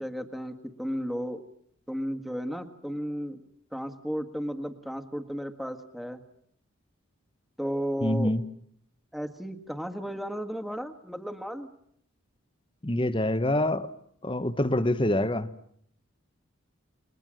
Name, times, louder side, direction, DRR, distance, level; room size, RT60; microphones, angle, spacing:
voice 1, 0.0-1.4 1.9-3.4 3.7-6.2 7.6-8.3 9.1-11.7, equal, ahead, 1.7 m, -34 dB
voice 2, 8.0-8.4 12.8-13.9 14.2-15.5, left 1 dB, 25° left, 1.0 m, -25 dB
29.5 x 22.0 x 7.7 m
head